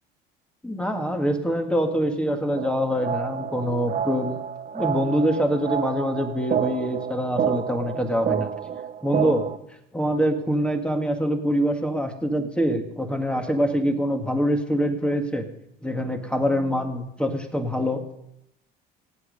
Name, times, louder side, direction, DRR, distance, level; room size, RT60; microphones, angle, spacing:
voice 1, 0.6-4.4 4.7-8.5 9.0-9.5 9.9-15.5 15.8-18.0, equal, 5° left, 5 dB, 2.0 m, -24 dB
sound 1, 2.6-9.6, right 8 dB, 40° right, 1.0 m, -29 dB
16.5 x 8.7 x 5.4 m, 0.84 s
supercardioid pair, 85°, 21 cm